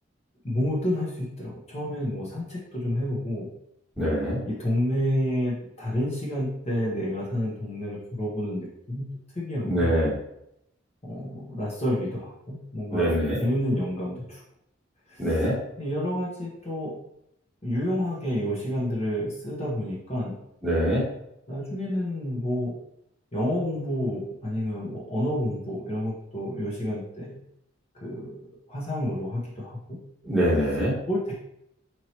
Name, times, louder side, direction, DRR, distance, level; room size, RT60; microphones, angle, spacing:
voice 1, 0.4-3.5 4.5-9.0 9.3-9.9 11.0-14.4 15.1-15.5 15.8-16.9 17.6-20.4 21.5-22.8 23.3-27.3 27.9-30.0 31.1-31.3, equal, 35° left, -5 dB, 0.9 m, -29 dB
voice 2, 4.0-4.4 9.6-10.2 12.9-13.4 15.2-15.6 20.6-21.0 30.2-31.0, equal, 5° right, -8 dB, 1.3 m, -24 dB
4.5 x 3.0 x 2.9 m, 0.79 s
head